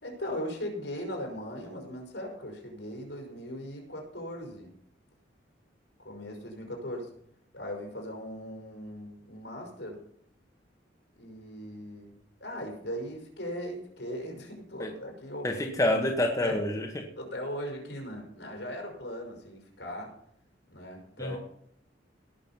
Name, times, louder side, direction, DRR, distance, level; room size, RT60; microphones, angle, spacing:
voice 1, 0.0-4.7 6.0-7.1 7.5-10.0 11.2-12.1 12.4-15.5 16.4-16.6 17.2-20.2 20.7-21.4, equal, 65° left, 1 dB, 5.3 m, -38 dB
voice 2, 15.4-17.1 21.2-21.4, left 1 dB, 15° left, 1 dB, 1.4 m, -28 dB
18.5 x 6.4 x 5.7 m, 0.68 s
head